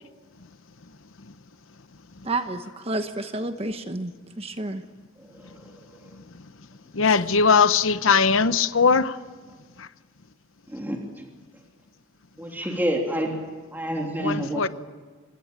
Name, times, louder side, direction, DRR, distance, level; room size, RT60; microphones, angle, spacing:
voice 1, 2.2-4.9, right 2 dB, 30° right, 1.1 m, -30 dB
voice 2, 6.9-9.2 14.2-14.7, left 5 dB, 75° left, 1.0 m, -20 dB
voice 3, 12.4-13.3 13.7-14.6, equal, 10° right, 3.2 m, -27 dB
26.0 x 21.0 x 8.9 m
head